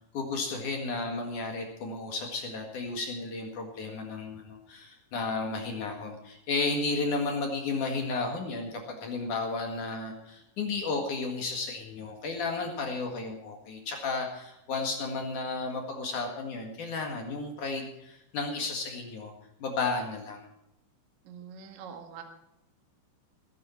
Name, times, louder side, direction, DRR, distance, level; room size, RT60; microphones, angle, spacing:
voice 1, 0.1-19.3 19.6-20.5, left 3 dB, 55° left, 2 dB, 2.5 m, -33 dB
voice 2, 21.3-22.2, right 7 dB, 50° right, 3 dB, 2.3 m, -44 dB
19.0 x 11.0 x 4.4 m, 0.85 s
omnidirectional pair, 5.7 m